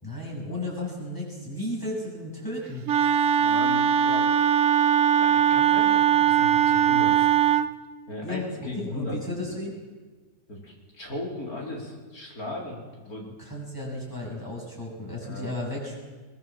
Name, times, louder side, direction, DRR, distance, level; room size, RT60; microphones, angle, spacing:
voice 1, 0.0-2.8 8.2-8.4 8.8-9.7 13.4-16.0, left 1 dB, 10° left, -4 dB, 7.0 m, -34 dB
Wind instrument woodwind instrument, 2.9-7.7, right 9 dB, 60° right, 1.1 m, -20 dB
voice 2, 3.4-4.3 5.2-7.3 8.1-9.2 9.4-9.5 10.5-13.3 15.2-15.5, left 2 dB, 65° left, -1 dB, 4.6 m, -37 dB
22.5 x 20.0 x 7.4 m, 1.4 s
omnidirectional pair, 1.7 m